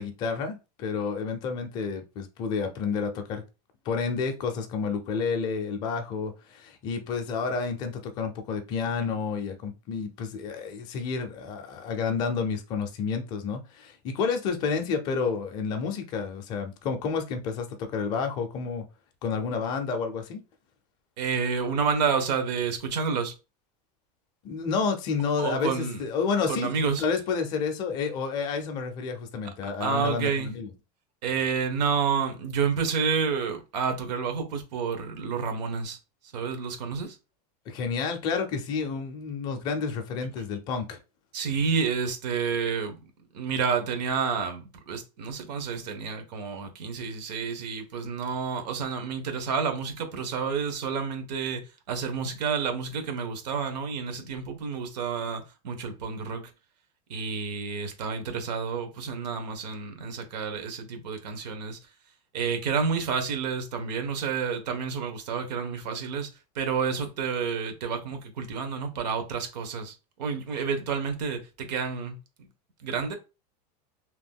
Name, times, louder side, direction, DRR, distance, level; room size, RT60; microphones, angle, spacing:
voice 1, 0.0-3.4 3.9-18.9 19.2-20.4 24.4-26.7 27.0-30.7 37.7-41.0, left 5 dB, 20° left, 0.4 m, -30 dB
voice 2, 21.2-23.3 25.4-26.0 26.5-27.0 29.8-30.5 31.2-36.0 36.3-37.2 41.3-43.0 43.3-56.5 57.1-61.8 62.3-66.3 66.5-72.2 72.8-73.1, right 6 dB, 85° right, 1.0 m, -29 dB
2.9 x 2.2 x 3.5 m
supercardioid pair, 180°, 21 cm